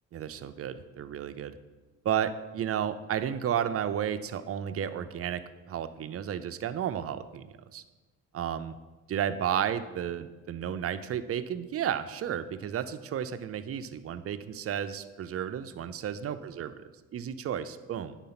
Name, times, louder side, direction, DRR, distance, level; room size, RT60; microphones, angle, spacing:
voice 1, 0.1-1.6 2.0-7.8 8.3-8.8 9.1-16.8 17.1-18.2, right 9 dB, 50° right, 11 dB, 0.5 m, -32 dB
9.1 x 3.9 x 5.8 m, 1.2 s
cardioid pair, 90°, 30 cm